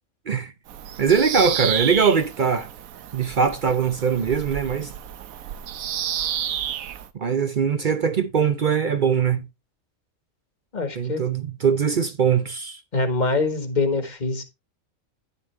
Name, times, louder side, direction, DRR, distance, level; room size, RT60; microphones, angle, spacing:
Bird vocalization bird call bird song, 0.7-7.1, right 10 dB, 85° right, 1.2 m, -31 dB
voice 1, 1.0-2.7 3.1-4.9 7.1-9.5 11.0-12.8, right 6 dB, 50° right, 0.6 m, -21 dB
voice 2, 10.7-11.2 12.9-14.4, left 3 dB, 35° left, 1.4 m, -24 dB
10.0 x 7.1 x 3.2 m
omnidirectional pair, 1.4 m